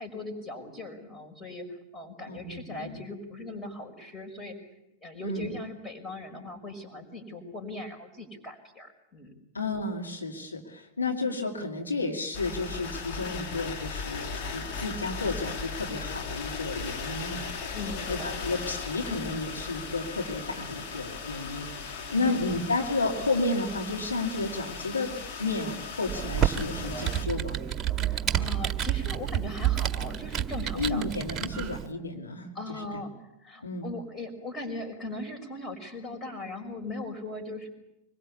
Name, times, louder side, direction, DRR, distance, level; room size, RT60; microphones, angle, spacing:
voice 1, 0.0-4.6 5.0-9.3 17.7-18.5 22.1-22.5 28.0-31.1 32.5-37.7, left 2 dB, 15° left, 5 dB, 5.8 m, -39 dB
voice 2, 2.3-3.0 5.2-5.5 9.5-17.5 18.1-25.1 25.4-27.6 30.7-32.5 33.6-33.9, left 3 dB, 80° left, 1 dB, 2.7 m, -32 dB
sound 1, 12.3-27.2, left 5 dB, 45° left, 3.0 m, -37 dB
Computer keyboard, 26.1-31.9, right 10 dB, 20° right, 1.5 m, -29 dB
25.0 x 22.0 x 8.5 m, 0.86 s
figure-of-eight pair, 90°, 0 cm